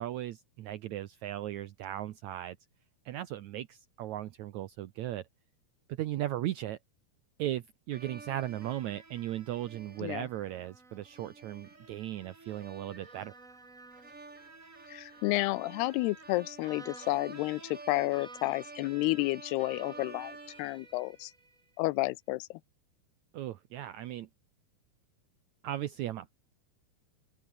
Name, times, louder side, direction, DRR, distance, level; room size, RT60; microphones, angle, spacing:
voice 1, 0.0-2.6 3.0-5.2 6.0-6.8 7.4-13.3 23.3-24.3 25.6-26.3, right 13 dB, 80° right, 1.6 m, -37 dB
sound 1, 7.9-21.6, right 3 dB, 20° right, 3.2 m, -50 dB
voice 2, 14.9-21.3 21.8-22.5, left 20 dB, 85° left, 2.8 m, -31 dB
open air
omnidirectional pair, 4.6 m